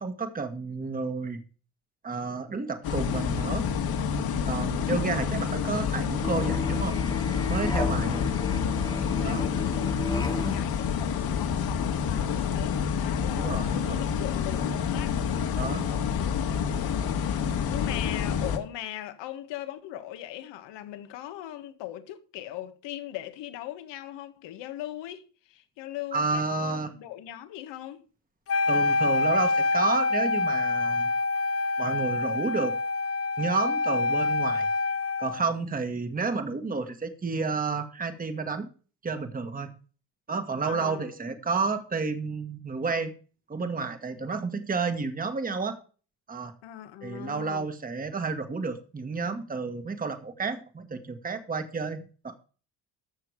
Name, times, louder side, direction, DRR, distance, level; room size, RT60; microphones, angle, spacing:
voice 1, 0.0-1.4 2.0-3.6 4.4-7.0 7.5-8.2 9.2-9.4 13.3-14.0 15.6-16.0 26.1-26.9 28.7-31.1 31.8-32.8 33.4-34.7 35.2-38.7 39.0-39.7 40.3-43.1 43.5-45.8 46.3-46.5 47.0-52.4, right 4 dB, 20° right, 1.6 m, -31 dB
sound 1, 2.8-18.6, left 7 dB, 55° left, 2.1 m, -28 dB
Musical instrument, 6.2-10.7, left 3 dB, 10° left, 1.7 m, -32 dB
voice 2, 7.8-8.7 9.0-13.5 13.9-15.2 17.6-28.0 40.6-41.1 46.6-47.7, left 13 dB, 75° left, 1.8 m, -40 dB
Wind instrument woodwind instrument, 28.5-35.4, left 3 dB, 35° left, 0.7 m, -26 dB
13.0 x 6.7 x 4.8 m
cardioid pair, 105°, 43 cm